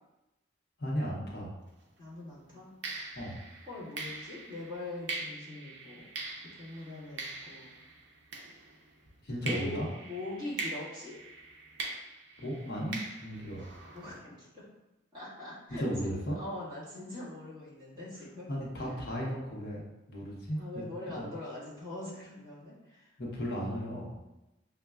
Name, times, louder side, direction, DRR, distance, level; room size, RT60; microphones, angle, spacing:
voice 1, 0.8-1.5 3.2-3.4 9.2-9.9 12.4-13.7 15.7-16.4 18.5-19.8 20.1-20.8 21.2-21.3 23.2-24.1, equal, 50° left, -3 dB, 0.7 m, -35 dB
sound 1, 1.7-1.9 2.8-9.0 9.5-14.2, right 3 dB, 65° right, 0.6 m, -42 dB
voice 2, 2.0-2.7 3.7-6.1 6.6-7.7 9.4-11.2 13.9-14.6 15.1-18.5 18.8-19.0 20.5-24.1, left 2 dB, 25° right, -10 dB, 1.5 m, -43 dB
5.9 x 2.1 x 2.3 m, 0.97 s
head